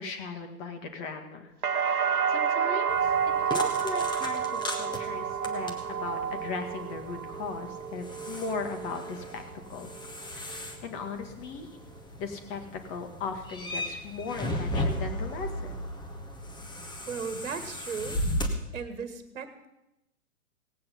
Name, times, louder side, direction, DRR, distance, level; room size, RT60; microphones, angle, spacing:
voice 1, 0.0-1.5 2.0-3.0 3.5-9.4 9.7-9.9 10.3-11.7 12.2-12.6 12.9-15.9, left 4 dB, 25° left, 5 dB, 1.8 m, -38 dB
sound 1, 1.6-9.5 9.9-10.6, right 7 dB, 80° right, 0.8 m, -30 dB
sound 2, 2.9-18.5, left 1 dB, 10° left, 1.3 m, -36 dB
voice 2, 17.1-18.2 18.7-19.7, right 6 dB, 55° right, 9 dB, 1.7 m, -36 dB
17.5 x 8.6 x 5.7 m, 0.89 s
figure-of-eight pair, 110°, 44 cm